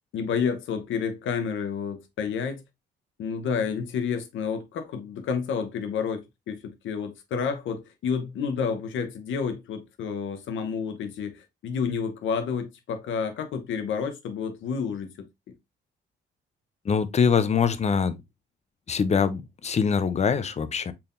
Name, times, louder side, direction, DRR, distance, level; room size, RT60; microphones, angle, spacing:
voice 1, 0.1-2.6 3.2-6.2 6.5-15.3, left 6 dB, 75° left, 1.0 m, -30 dB
voice 2, 16.9-18.2 18.9-20.9, left 6 dB, 35° left, 0.6 m, -23 dB
4.6 x 3.5 x 2.5 m
cardioid pair, 90°, 20 cm